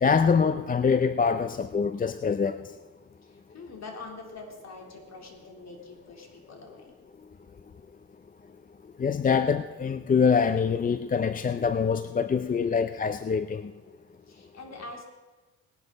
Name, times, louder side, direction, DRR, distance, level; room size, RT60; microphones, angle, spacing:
voice 1, 0.0-2.6 9.0-13.6, left 6 dB, 25° left, 10 dB, 0.5 m, -24 dB
voice 2, 3.2-6.9 14.3-15.0, left 3 dB, 45° left, 0 dB, 3.6 m, -44 dB
18.5 x 11.5 x 4.1 m, 1.2 s
cardioid pair, 95°, 37 cm